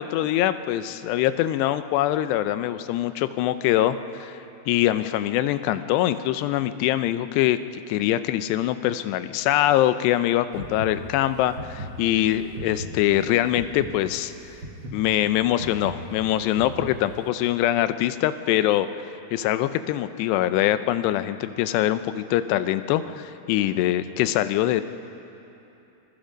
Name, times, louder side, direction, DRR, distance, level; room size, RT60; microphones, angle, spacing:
voice 1, 0.0-4.4 4.7-7.6 7.9-14.3 14.9-18.9 19.3-24.8, left 13 dB, 85° left, 12 dB, 2.8 m, -23 dB
latido corazon, 10.5-17.3, right 1 dB, 45° right, 1.6 m, -38 dB
26.5 x 22.0 x 5.2 m, 2.9 s
omnidirectional pair, 4.8 m